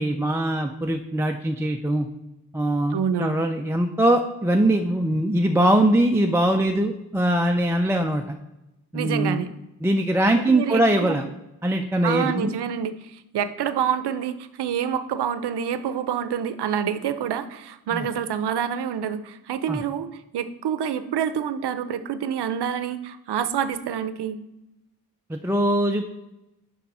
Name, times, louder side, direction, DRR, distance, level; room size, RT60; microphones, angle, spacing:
voice 1, 0.0-2.1 2.5-8.2 8.9-9.4 9.8-11.3 11.6-12.5 17.9-18.1 19.7-19.8 25.3-26.1, right 1 dB, 5° right, 3 dB, 0.3 m, -22 dB
voice 2, 2.9-3.4 8.9-9.5 10.5-11.1 12.0-13.0 13.3-24.4, right 8 dB, 80° right, 13 dB, 0.6 m, -27 dB
6.8 x 5.5 x 4.2 m, 0.93 s
wide cardioid pair, 105°, 39 cm